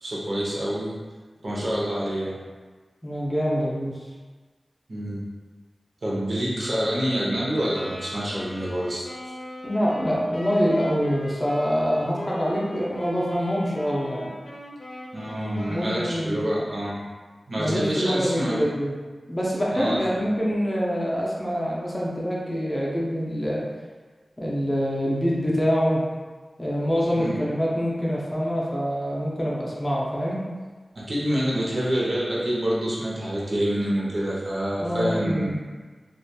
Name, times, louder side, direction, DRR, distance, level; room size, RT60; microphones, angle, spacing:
voice 1, 0.0-1.0 1.4-2.4 4.9-5.2 6.0-9.1 15.1-17.0 17.5-18.7 19.7-20.0 27.1-27.4 30.9-35.6, equal, 60° right, -6 dB, 0.8 m, -27 dB
voice 2, 3.0-3.9 9.6-14.3 15.7-16.4 17.6-18.9 19.3-23.6 24.4-26.0 26.6-30.5 34.8-35.6, equal, 20° left, -5 dB, 0.6 m, -25 dB
Wind instrument woodwind instrument, 7.5-16.6, equal, 80° left, 0.5 m, -40 dB
2.8 x 2.4 x 2.2 m, 1.4 s
wide cardioid pair, 60°, 0 cm